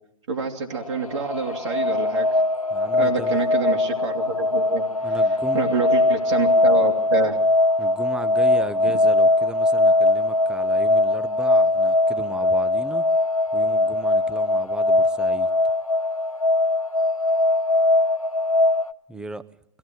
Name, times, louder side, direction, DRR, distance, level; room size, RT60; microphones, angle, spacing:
voice 1, 0.3-2.4 3.0-5.2 5.5-7.4, right 4 dB, 60° right, 2.7 m, -27 dB
sound 1, 0.8-18.9, left 2 dB, 90° left, 0.9 m, -21 dB
voice 2, 2.7-3.4 5.0-5.7 7.8-13.0 13.5-15.5 19.1-19.4, right 2 dB, 5° right, 0.8 m, -36 dB
24.5 x 16.5 x 7.7 m
figure-of-eight pair, 115°, 18 cm